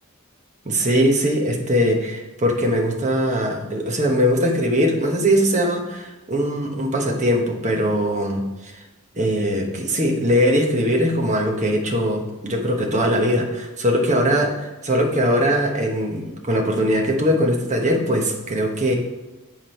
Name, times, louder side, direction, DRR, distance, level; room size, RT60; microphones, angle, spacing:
voice 1, 0.6-8.7 9.1-19.0, equal, 35° right, 0 dB, 1.1 m, -21 dB
7.4 x 4.7 x 4.5 m, 1.1 s
head